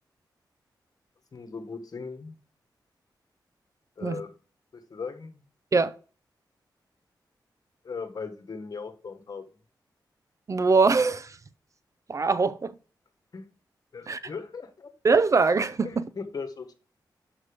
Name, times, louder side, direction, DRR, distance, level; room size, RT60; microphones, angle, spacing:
voice 1, 1.3-2.3 4.0-4.3 4.7-5.4 7.8-9.4 13.3-13.5 13.9-14.9 15.8-16.7, left 5 dB, 55° left, 1.4 m, -38 dB
voice 2, 10.5-11.3 12.1-12.7 14.1-14.2 15.0-16.0, right 4 dB, 40° right, 0.5 m, -22 dB
6.5 x 5.9 x 5.1 m
wide cardioid pair, 95°, 8 cm